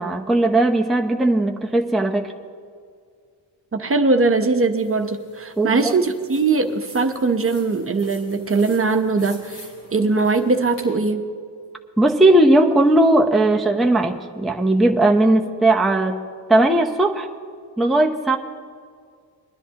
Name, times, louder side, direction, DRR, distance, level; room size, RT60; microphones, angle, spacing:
voice 1, 0.0-2.3 5.6-5.9 12.0-16.2 16.5-17.3 17.8-18.4, right 1 dB, ahead, 1 dB, 0.7 m, -17 dB
voice 2, 3.7-9.7 9.9-11.3, right 3 dB, 30° right, 6 dB, 0.9 m, -20 dB
sound 1, 4.8-10.9, left 2 dB, 90° left, 3.5 m, -46 dB
21.5 x 10.5 x 2.9 m, 2.1 s
cardioid pair, 75°, 42 cm